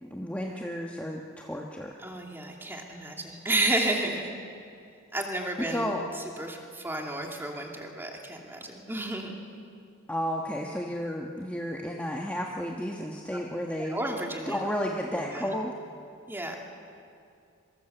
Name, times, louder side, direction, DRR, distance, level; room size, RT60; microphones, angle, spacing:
voice 1, 0.0-2.0 5.7-6.0 10.1-14.0 14.5-15.7, equal, 5° left, -1 dB, 1.4 m, -32 dB
voice 2, 2.0-4.3 5.1-5.9 6.4-9.4 13.3-13.4 13.8-14.6 15.1-15.5 16.3-16.6, right 2 dB, 10° right, 1 dB, 2.7 m, -32 dB
26.0 x 24.5 x 8.0 m, 2.5 s
head